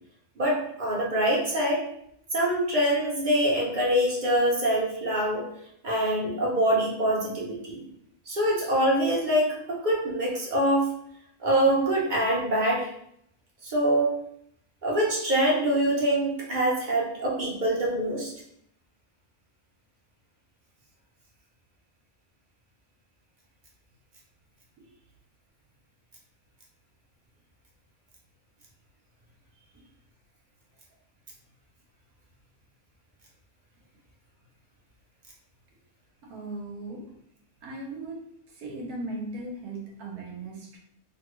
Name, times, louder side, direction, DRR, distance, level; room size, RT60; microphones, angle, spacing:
voice 1, 0.4-1.8 2.3-5.5 5.8-7.8 8.3-10.9 11.4-12.9 13.6-14.1 14.8-18.3, right 1 dB, 45° right, -4 dB, 0.7 m, -24 dB
voice 2, 36.3-37.0 37.6-38.2 38.5-40.8, right 2 dB, 85° right, 0 dB, 1.3 m, -37 dB
3.1 x 2.2 x 3.0 m, 0.72 s
omnidirectional pair, 1.5 m